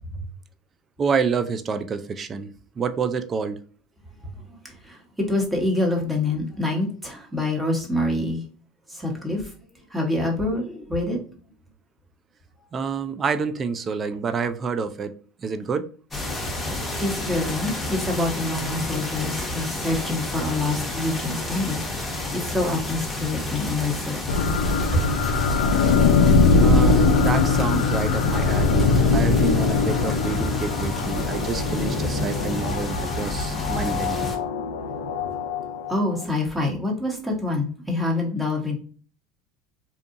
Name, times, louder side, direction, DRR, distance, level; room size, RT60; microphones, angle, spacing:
voice 1, 1.0-3.6 12.7-15.9 26.6-34.3, right 5 dB, 35° right, 0.4 m, -28 dB
voice 2, 4.2-8.4 8.9-9.5 9.9-11.2 17.0-24.2 24.9-25.1 35.9-38.8, left 2 dB, 10° right, 1.0 m, -26 dB
sound 1, 16.1-34.4, left 2 dB, 15° left, 0.9 m, -30 dB
sound 2, 24.3-36.2, left 4 dB, 85° left, 0.3 m, -21 dB
2.7 x 2.3 x 2.5 m
hypercardioid pair, 90°, 0 cm